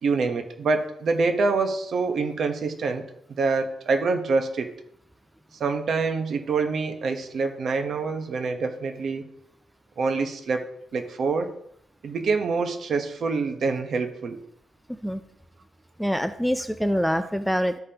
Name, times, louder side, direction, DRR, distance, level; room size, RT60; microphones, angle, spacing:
voice 1, 0.0-3.0 3.4-4.7 5.6-9.3 10.0-10.6 10.9-11.5 12.0-14.4 17.1-17.2, right 4 dB, 55° right, 6 dB, 1.0 m, -26 dB
voice 2, 14.9-15.2 16.0-17.8, equal, ahead, 9 dB, 0.4 m, -25 dB
13.0 x 5.2 x 2.9 m, 0.72 s
cardioid pair, 130°, 0 cm